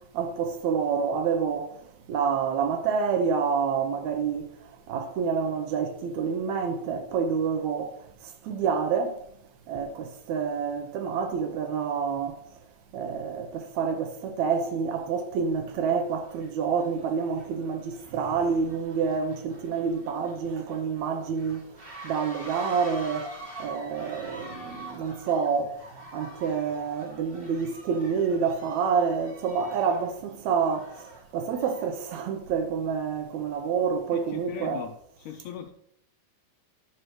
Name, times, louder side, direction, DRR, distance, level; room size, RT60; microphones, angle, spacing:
voice 1, 0.1-1.7 2.1-4.4 4.9-7.9 8.5-9.2 9.7-12.4 12.9-21.6 22.0-23.3 23.6-25.7 26.1-30.9 31.3-34.9, right 6 dB, 75° right, 1.8 m, -28 dB
sound 1, 14.6-14.7 15.5-15.7 16.0-32.0, right 1 dB, 35° right, 0.9 m, -46 dB
voice 2, 34.1-35.7, left 9 dB, 80° left, 1.8 m, -39 dB
11.5 x 6.5 x 3.1 m
omnidirectional pair, 4.0 m